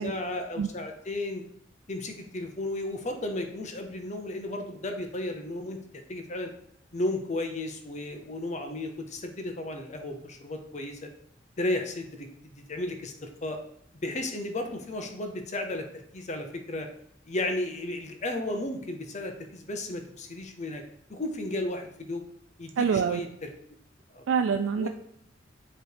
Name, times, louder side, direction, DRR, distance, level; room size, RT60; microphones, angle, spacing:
voice 1, 0.0-1.4 1.9-6.5 6.9-11.1 11.6-13.6 13.9-16.9 17.3-20.8 21.1-22.2 22.6-23.5 24.1-24.2 24.8-24.9, left 1 dB, 40° left, 5 dB, 0.8 m, -34 dB
voice 2, 22.8-23.3 24.3-24.9, right 6 dB, 90° right, 7 dB, 0.4 m, -26 dB
7.9 x 3.2 x 4.7 m, 0.71 s
head